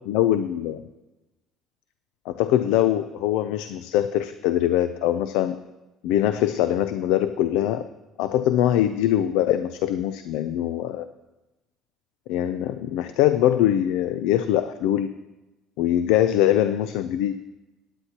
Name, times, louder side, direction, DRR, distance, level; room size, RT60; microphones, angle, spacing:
voice 1, 0.1-0.8 2.3-5.6 6.0-7.8 8.2-11.1 12.3-15.1 15.8-17.4, left 12 dB, 85° left, 11 dB, 0.4 m, -22 dB
17.0 x 9.9 x 2.9 m, 1.0 s
cardioid pair, 120°, 0 cm